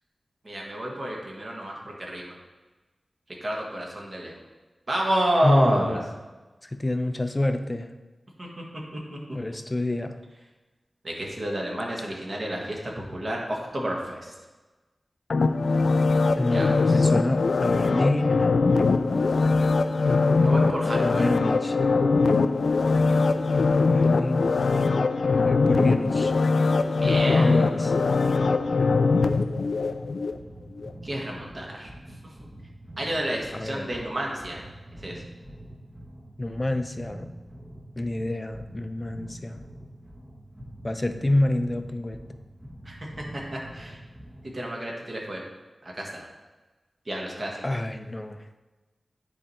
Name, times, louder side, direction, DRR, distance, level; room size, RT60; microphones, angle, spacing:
voice 1, 0.4-2.3 3.4-4.4 4.9-6.0 8.4-8.5 8.9-9.2 11.0-14.3 16.5-17.1 20.4-21.2 27.0-27.6 31.0-31.9 33.0-34.6 35.0-35.1 42.9-43.0 43.3-44.0 44.5-45.4 45.8-46.3 47.1-47.6, right 1 dB, 40° right, -2 dB, 1.6 m, -30 dB
voice 2, 5.4-6.0 6.6-7.9 9.3-10.2 16.4-18.5 21.0-21.8 23.9-24.5 25.4-26.3 27.3-27.9 33.5-33.9 36.4-37.3 38.0-39.6 40.8-42.2 47.6-48.4, left 1 dB, 25° left, 8 dB, 0.5 m, -27 dB
sound 1, 15.3-30.3 30.8-30.9, left 3 dB, 75° left, 0.3 m, -22 dB
sound 2, 28.2-44.6, right 1 dB, 15° right, 0.9 m, -45 dB
9.9 x 3.3 x 4.2 m, 1.2 s
wide cardioid pair, 70°, 0 cm